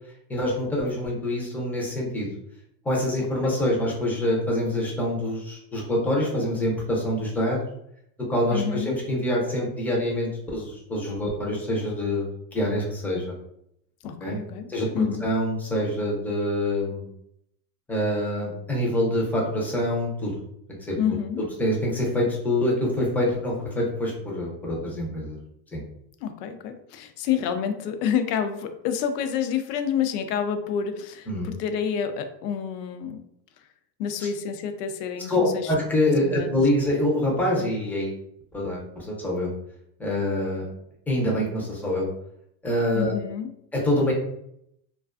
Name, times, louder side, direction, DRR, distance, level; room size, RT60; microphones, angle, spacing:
voice 1, 0.3-2.3 2.8-7.6 8.3-12.2 12.5-13.3 14.2-14.4 14.7-17.1 17.9-20.3 20.9-21.0 21.6-25.4 25.7-25.8 31.3-31.5 35.3-38.2 38.5-39.5 40.0-40.7 41.1-42.1 42.6-43.1 43.7-44.1, left 1 dB, 5° left, -3 dB, 0.4 m, -25 dB
voice 2, 8.5-9.0 14.0-15.3 21.0-21.4 26.2-33.2 33.6-33.7 34.0-35.7 36.2-36.6 42.9-43.5, left 8 dB, 75° left, 8 dB, 0.6 m, -28 dB
2.4 x 2.3 x 2.3 m, 0.75 s
supercardioid pair, 120°, 49 cm